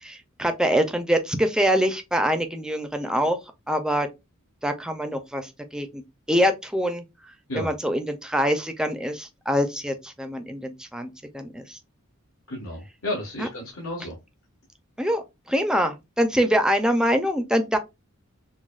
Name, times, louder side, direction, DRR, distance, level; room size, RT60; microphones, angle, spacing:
voice 1, 0.0-3.4 3.7-4.1 4.6-6.0 6.3-7.0 7.5-11.8 13.4-13.5 15.0-17.8, equal, 5° right, 0.5 m, -24 dB
voice 2, 12.5-14.2, left 1 dB, 80° left, 1.7 m, -32 dB
6.1 x 2.2 x 2.4 m
head